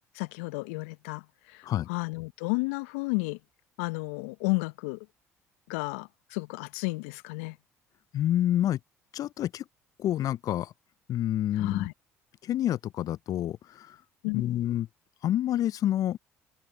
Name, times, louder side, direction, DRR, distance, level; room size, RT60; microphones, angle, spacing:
voice 1, 0.1-1.6 1.9-3.4 3.8-5.0 5.7-7.6 11.6-11.9 14.2-14.6, left 29 dB, 75° left, 0.9 m, -32 dB
voice 2, 8.1-8.8 9.1-9.6 10.0-10.7 11.1-11.9 12.4-14.0 14.3-14.9 15.2-16.2, left 12 dB, 50° left, 0.5 m, -28 dB
hypercardioid pair, 60°, 8 cm